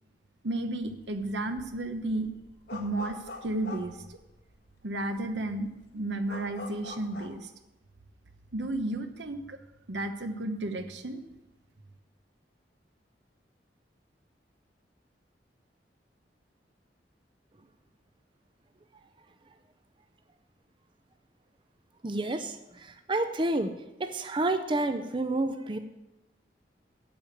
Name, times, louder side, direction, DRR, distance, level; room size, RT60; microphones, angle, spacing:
voice 1, 0.4-2.3 2.7-4.2 4.8-7.5 8.5-9.6 9.9-11.2, right 1 dB, 80° right, 8 dB, 1.0 m, -33 dB
sound 1, 0.8-1.2 1.5-4.7 5.2-5.3 5.5-7.4, left 2 dB, 70° left, 1.7 m, -44 dB
voice 2, 22.0-23.7 24.0-25.8, right 2 dB, 30° right, 8 dB, 0.6 m, -29 dB
8.6 x 6.8 x 8.6 m, 0.94 s
head